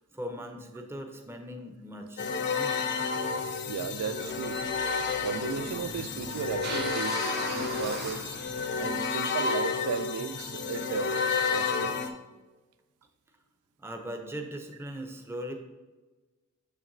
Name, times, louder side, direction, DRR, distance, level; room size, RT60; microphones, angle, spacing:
voice 1, 0.1-2.8 7.7-7.8 9.1-9.6 13.8-15.5, equal, 10° right, 0.5 m, -40 dB
sound 1, 2.2-12.1, left 5 dB, 50° left, 0.5 m, -31 dB
voice 2, 3.7-4.6 5.1-8.4 8.8-11.2 11.5-12.0, right 6 dB, 85° right, 0.3 m, -35 dB
sound 2, 4.3-9.2, right 4 dB, 50° right, 0.7 m, -41 dB
6.6 x 5.8 x 2.6 m
head